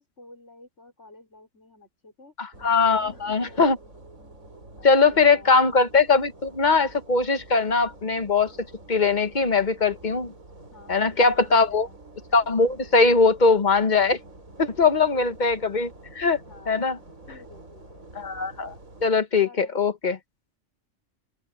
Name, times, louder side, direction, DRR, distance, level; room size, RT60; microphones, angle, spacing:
voice 1, 0.0-2.3 2.9-3.7 4.8-5.7 10.7-12.0 14.7-15.9 16.4-18.0 19.4-19.8, left 3 dB, 60° left, 5.7 m, -50 dB
voice 2, 2.4-3.8 4.8-8.5 8.9-10.3 10.9-11.9 12.3-14.2 14.6-15.9 16.1-16.4 16.7-17.0 18.1-18.7 19.0-20.2, left 4 dB, 35° left, 1.3 m, -21 dB
sound 1, 2.5-19.1, right 2 dB, 75° right, 6.0 m, -47 dB
open air
omnidirectional pair, 1.4 m